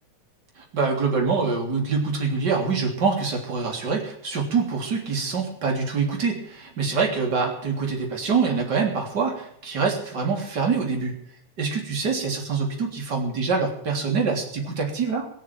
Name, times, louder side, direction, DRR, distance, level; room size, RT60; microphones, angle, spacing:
voice 1, 0.6-11.2 11.6-15.3, right 5 dB, 35° right, 1 dB, 3.7 m, -25 dB
22.0 x 7.4 x 7.5 m, 0.69 s
omnidirectional pair, 3.4 m